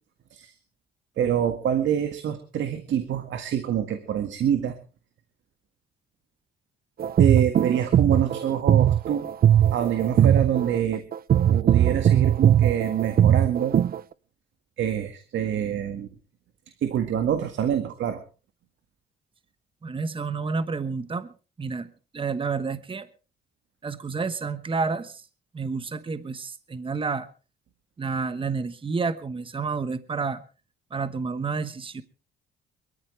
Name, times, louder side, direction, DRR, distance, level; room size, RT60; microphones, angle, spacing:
voice 1, 1.2-4.7 7.2-9.3 9.7-11.0 11.5-13.8 14.8-16.1 16.8-18.2, right 9 dB, 70° right, 7 dB, 1.9 m, -26 dB
sound 1, 7.0-14.0, right 10 dB, 50° right, 0.7 m, -20 dB
voice 2, 19.8-21.3 21.6-23.1 23.8-25.2 25.5-27.3 28.0-30.4 30.9-32.0, right 4 dB, 25° right, 13 dB, 1.1 m, -30 dB
22.5 x 14.0 x 3.3 m, 0.35 s
cardioid pair, 90°, 20 cm